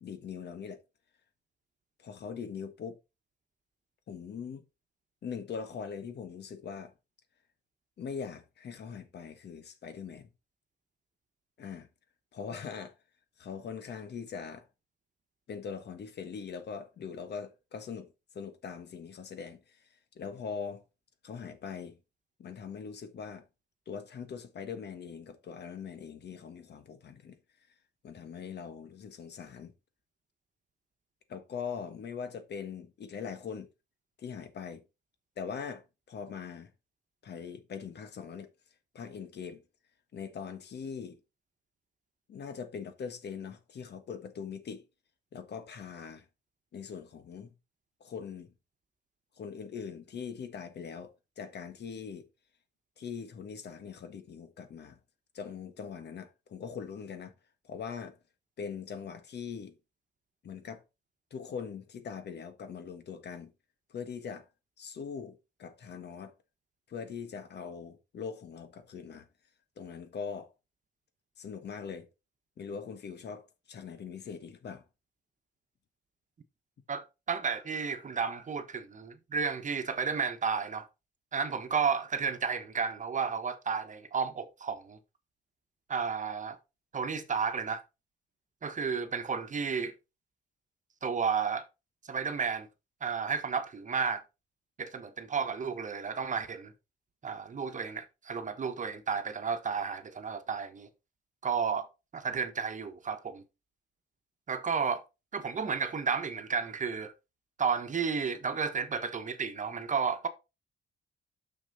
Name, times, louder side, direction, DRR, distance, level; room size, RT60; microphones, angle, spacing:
voice 1, 0.0-0.8 2.0-3.0 4.1-4.6 5.2-6.9 8.0-10.3 11.6-11.9 12.3-12.9 13.4-14.6 15.5-18.1 18.3-20.8 21.2-22.0 22.4-23.5 23.9-27.4 28.0-29.7 31.3-33.7 34.2-34.8 35.4-36.7 37.2-38.5 38.9-39.6 40.1-41.2 42.3-44.8 45.3-46.2 46.7-47.5 48.0-48.5 49.4-52.3 53.0-55.0 55.3-57.3 57.6-58.2 58.6-59.8 60.4-60.8 61.3-63.5 63.9-64.4 64.8-66.3 66.9-69.3 69.8-70.5 71.4-72.1 72.6-74.8, left 6 dB, 60° left, 1.5 m, -41 dB
voice 2, 76.9-80.9 81.3-85.0 85.9-86.6 86.9-87.8 88.6-89.9 91.0-91.6 92.1-92.7 93.0-94.2 94.8-96.7 97.2-100.9 101.4-101.9 102.1-103.4 104.5-105.0 105.3-107.1 107.6-110.3, right 6 dB, 40° right, 1.2 m, -32 dB
6.4 x 6.0 x 4.1 m
cardioid pair, 90°, 20 cm